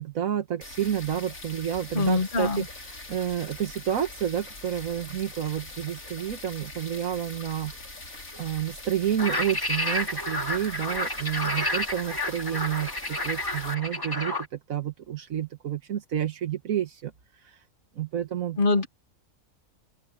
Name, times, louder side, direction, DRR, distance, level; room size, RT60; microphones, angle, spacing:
voice 1, 0.0-7.7 8.4-17.1 17.4-17.6 18.0-18.6, right 10 dB, 80° right, 1.6 m, -30 dB
sound 1, 0.6-13.7, left 2 dB, 90° left, 5.2 m, -43 dB
voice 2, 1.9-2.6 18.6-18.9, left 3 dB, 40° left, 1.4 m, -23 dB
sound 2, 9.2-14.5, left 1 dB, 15° left, 2.0 m, -30 dB
open air
omnidirectional pair, 1.4 m